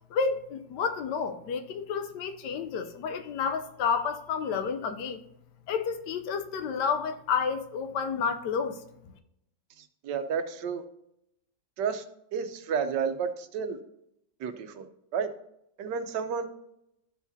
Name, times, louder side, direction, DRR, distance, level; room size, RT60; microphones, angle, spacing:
voice 1, 0.1-5.2 5.7-8.8, left 6 dB, 85° left, 1.3 m, -30 dB
voice 2, 9.8-10.8 11.8-12.0 12.3-13.8 14.4-14.9 15.1-15.3 15.8-16.5, right 6 dB, 85° right, 1.4 m, -31 dB
13.0 x 4.9 x 2.7 m
omnidirectional pair, 1.8 m